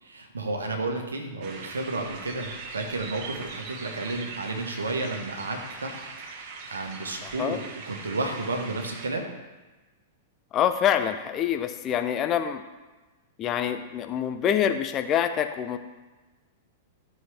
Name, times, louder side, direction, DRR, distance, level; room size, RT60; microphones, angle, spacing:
voice 1, 0.0-6.0 6.3-7.6 7.9-9.3, right 2 dB, 75° right, 3 dB, 1.4 m, -32 dB
sound 1, 1.4-9.1, right 4 dB, 45° right, 1.1 m, -41 dB
voice 2, 7.2-7.6 10.5-12.6 13.4-15.8, left 9 dB, 30° left, 8 dB, 0.7 m, -26 dB
12.5 x 6.5 x 3.4 m, 1.2 s
figure-of-eight pair, 100°, 0 cm